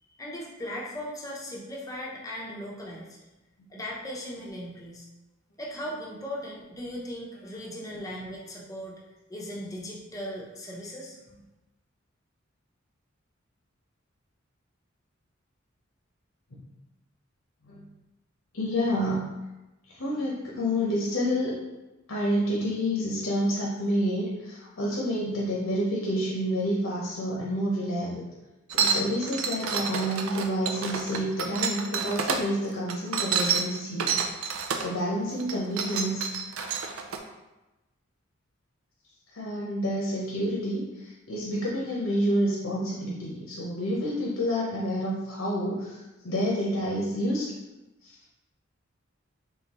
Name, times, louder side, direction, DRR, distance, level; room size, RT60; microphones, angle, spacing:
voice 1, 0.2-3.2 3.7-5.1 5.6-8.9 9.3-11.2, equal, 15° left, -3 dB, 0.7 m, -38 dB
voice 2, 18.5-19.3 19.9-21.5 22.1-28.2 28.7-34.3 34.8-36.3 39.3-47.5 48.0-48.1, equal, 85° left, -4 dB, 0.9 m, -29 dB
sound 1, 28.7-32.4 32.9-34.9 35.4-37.2, right 6 dB, 80° right, 0.4 m, -29 dB
3.9 x 3.5 x 3.0 m, 1.0 s
head